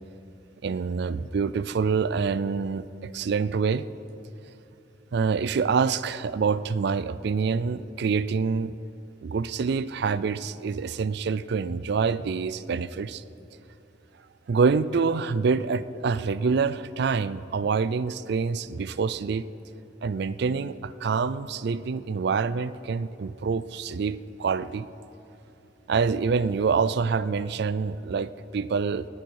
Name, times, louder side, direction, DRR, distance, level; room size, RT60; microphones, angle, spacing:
voice 1, 0.6-3.9 5.1-8.8 9.2-13.2 14.5-19.5 20.0-24.9 25.9-29.1, right 5 dB, 60° right, 16 dB, 0.4 m, -26 dB
19.5 x 9.3 x 4.7 m, 2.8 s
head